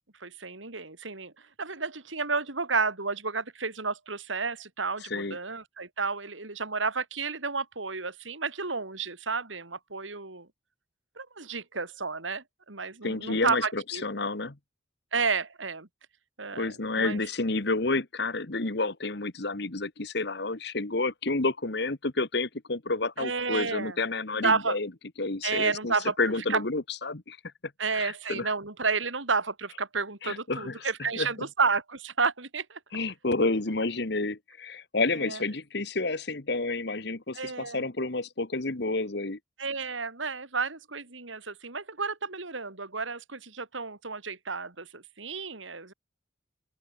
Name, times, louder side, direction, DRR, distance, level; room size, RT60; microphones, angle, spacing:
voice 1, 0.2-1.3 1.6-10.5 11.2-14.0 15.1-15.9 16.4-17.2 23.2-24.0 24.4-24.8 25.4-26.2 26.5-26.6 27.8-32.8 35.2-35.4 37.3-37.8 39.6-45.9, right 4 dB, 85° right, 3.2 m, -31 dB
voice 2, 5.0-5.4 13.0-14.6 16.5-24.9 25.2-27.4 27.9-28.5 30.2-31.3 32.9-39.4, left 3 dB, 60° left, 1.5 m, -30 dB
open air
head